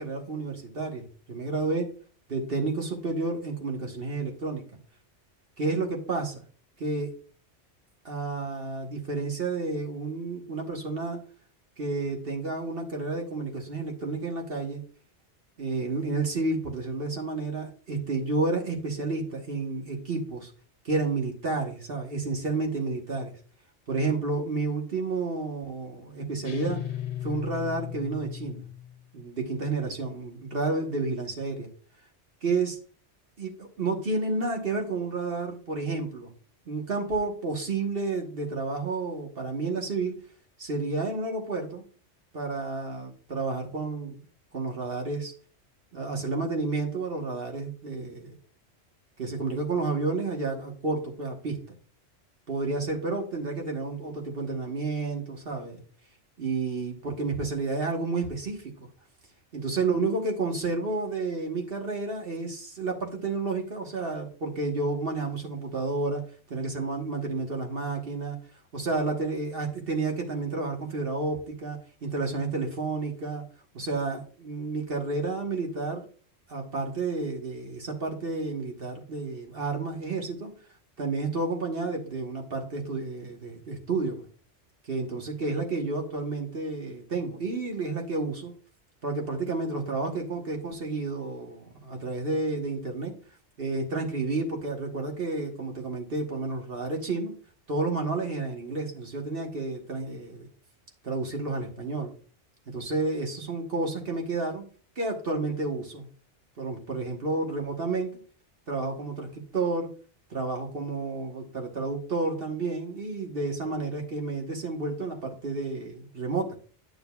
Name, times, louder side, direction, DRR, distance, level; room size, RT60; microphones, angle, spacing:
voice 1, 0.0-1.9 2.3-4.6 5.6-6.4 6.8-7.1 8.0-11.2 11.8-14.8 15.6-20.5 20.8-23.3 23.9-26.8 27.2-28.6 29.1-31.7 32.4-32.8 33.4-36.3 36.7-40.1 40.6-41.8 42.3-44.2 44.5-45.3 45.9-48.3 49.2-51.6 52.5-55.8 56.4-58.6 59.5-66.2 66.5-68.4 68.7-73.4 73.7-76.0 76.5-80.5 81.0-84.2 84.9-88.5 89.0-93.1 93.6-97.3 97.7-100.5 101.0-102.1 102.7-104.6 105.0-106.1 106.6-108.1 108.7-109.9 110.3-116.6, right 3 dB, 55° right, 1 dB, 1.5 m, -30 dB
sound 1, 26.4-29.0, left 11 dB, 80° left, 1.2 m, -36 dB
9.3 x 6.2 x 2.3 m, 0.42 s
omnidirectional pair, 1.2 m